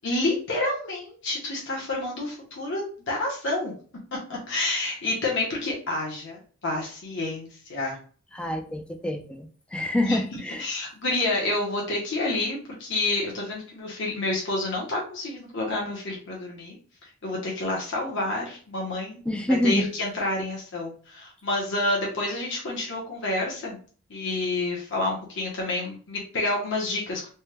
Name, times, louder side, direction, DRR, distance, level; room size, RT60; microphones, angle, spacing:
voice 1, 0.0-3.7 4.3-8.0 10.0-10.2 10.6-16.8 17.2-19.2 19.6-23.8 24.1-27.3, left 2 dB, 60° left, -3 dB, 0.9 m, -29 dB
voice 2, 8.3-10.7 19.3-19.9, left 1 dB, 5° left, 4 dB, 0.3 m, -26 dB
3.4 x 2.1 x 3.0 m, 0.42 s
head